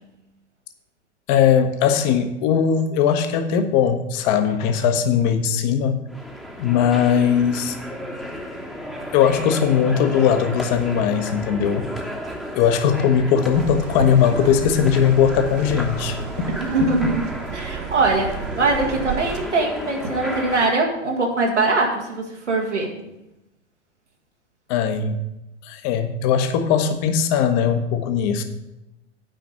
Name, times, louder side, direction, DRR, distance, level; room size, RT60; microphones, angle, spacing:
voice 1, 1.3-6.0 6.6-7.8 9.1-11.9 12.5-16.5 16.8-17.1 24.7-25.2 25.6-28.4, left 8 dB, 40° left, 8 dB, 1.0 m, -19 dB
sound 1, 6.1-20.7, equal, ahead, 1.1 m, -33 dB
sound 2, 13.5-19.5, right 8 dB, 35° right, 0.6 m, -32 dB
voice 2, 16.6-17.2 17.5-23.0, right 3 dB, 80° right, 0 dB, 2.0 m, -22 dB
9.1 x 5.1 x 7.1 m, 0.92 s
figure-of-eight pair, 95°, 35 cm